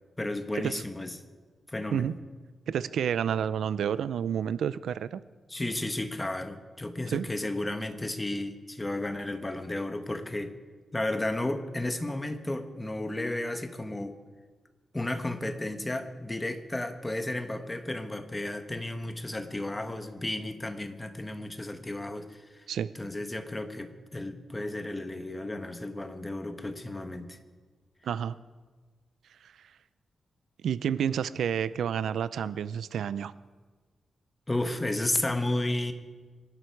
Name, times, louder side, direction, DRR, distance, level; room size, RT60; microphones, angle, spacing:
voice 1, 0.2-1.2 1.7-2.1 5.5-10.5 10.9-14.2 14.9-22.7 22.9-27.4 34.5-35.9, left 1 dB, 15° left, 8 dB, 1.4 m, -33 dB
voice 2, 2.7-5.2 7.1-7.3 22.7-22.9 28.0-28.4 30.6-33.3, right 8 dB, 90° right, 16 dB, 0.5 m, -29 dB
25.5 x 11.5 x 4.8 m, 1.4 s
cardioid pair, 100°, 0 cm